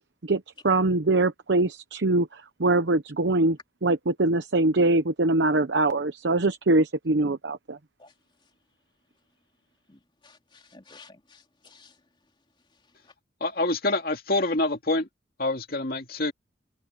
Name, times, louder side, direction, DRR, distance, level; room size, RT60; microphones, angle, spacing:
voice 1, 0.2-7.8, right 2 dB, 80° right, 0.9 m, -23 dB
voice 2, 9.9-11.9, left 4 dB, 25° left, 3.2 m, -53 dB
voice 3, 13.4-15.1 15.4-16.3, left 2 dB, 55° left, 2.4 m, -26 dB
open air
head